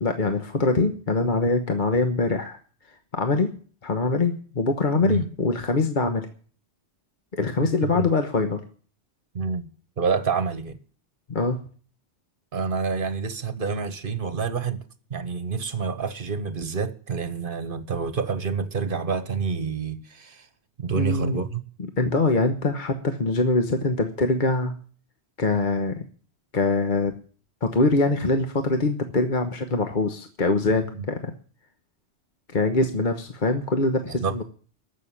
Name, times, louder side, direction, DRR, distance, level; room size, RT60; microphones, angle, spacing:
voice 1, 0.0-2.6 3.1-3.5 3.8-6.3 7.3-8.6 11.3-11.6 20.9-21.4 22.0-24.8 25.4-26.0 26.5-27.1 27.6-31.3 32.5-34.4, left 3 dB, 45° left, 1.3 m, -23 dB
voice 2, 7.6-8.1 9.3-9.7 10.0-10.8 12.5-14.8 15.1-20.5 20.8-21.6 30.9-31.0 34.0-34.3, right 5 dB, 55° right, 1.3 m, -28 dB
14.5 x 6.7 x 9.9 m
omnidirectional pair, 1.1 m